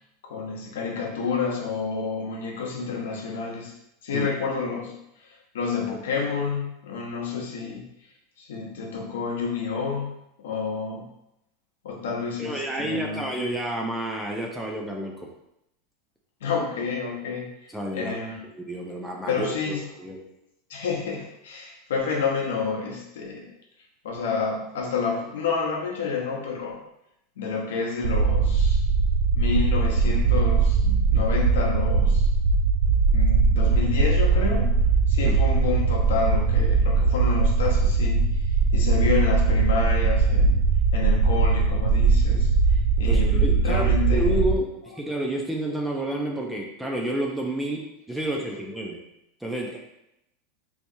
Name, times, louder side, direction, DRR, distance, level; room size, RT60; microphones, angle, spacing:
voice 1, 0.3-3.7 4.0-5.0 5.5-7.8 8.4-10.1 10.4-11.1 11.8-13.2 16.4-18.4 19.3-19.8 20.7-23.5 24.0-26.8 27.4-28.8 29.3-32.3 33.1-34.8 35.1-38.3 38.7-40.6 40.9-42.5 43.0-44.4, left 5 dB, 90° left, -1 dB, 0.9 m, -29 dB
voice 2, 12.4-15.3 17.7-18.1 18.5-20.2 35.2-35.4 43.0-49.0 49.4-49.8, right 1 dB, 5° right, -1 dB, 0.5 m, -30 dB
sound 1, 28.0-44.6, right 4 dB, 75° right, 0.3 m, -20 dB
3.4 x 2.8 x 2.6 m, 0.83 s
supercardioid pair, 130°, 0 cm